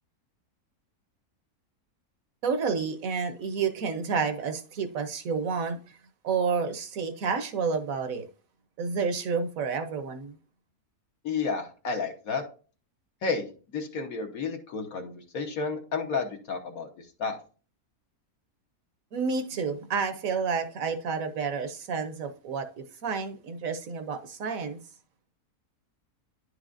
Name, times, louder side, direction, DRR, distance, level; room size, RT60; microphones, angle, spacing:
voice 1, 2.4-5.8 6.2-8.3 8.8-10.4 19.1-24.8, right 5 dB, 65° right, 1.2 m, -30 dB
voice 2, 11.2-12.4 13.2-13.5 13.7-17.4, left 4 dB, 65° left, 1.4 m, -31 dB
10.5 x 4.8 x 2.5 m
omnidirectional pair, 1.6 m